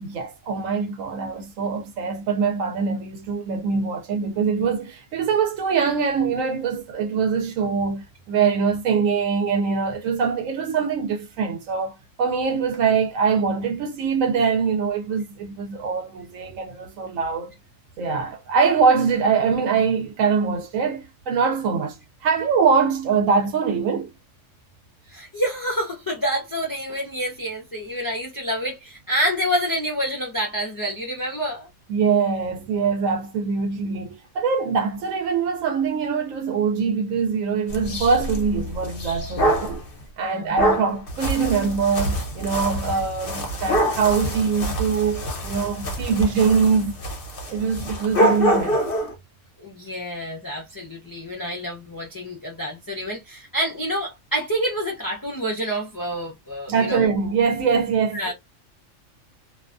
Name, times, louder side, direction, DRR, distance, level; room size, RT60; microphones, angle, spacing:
voice 1, 0.0-17.5 18.0-24.1 31.9-39.8 40.2-46.9 47.5-48.8 56.7-58.2, right 5 dB, 90° right, 1.0 m, -23 dB
voice 2, 25.1-31.7 40.2-40.5 49.6-57.1 58.1-58.3, equal, 25° left, 0.5 m, -28 dB
sound 1, 37.7-39.8 40.6-49.1, right 1 dB, 50° left, 1.0 m, -25 dB
2.6 x 2.2 x 2.4 m
omnidirectional pair, 1.3 m